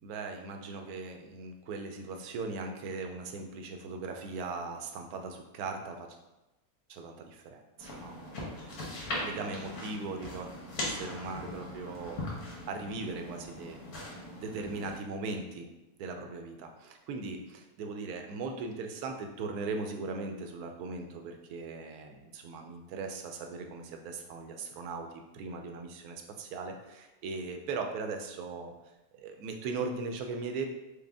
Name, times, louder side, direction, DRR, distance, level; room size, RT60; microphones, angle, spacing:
voice 1, 0.0-6.1 6.9-8.7 9.0-10.5 10.8-12.4 12.7-13.8 14.4-15.7 16.0-25.1 25.3-28.7 29.1-30.7, right 4 dB, 85° right, 4 dB, 1.1 m, -39 dB
sound 1, 7.8-15.0, left 1 dB, 85° left, 1.5 m, -40 dB
4.9 x 2.1 x 3.4 m, 1.0 s
omnidirectional pair, 1.6 m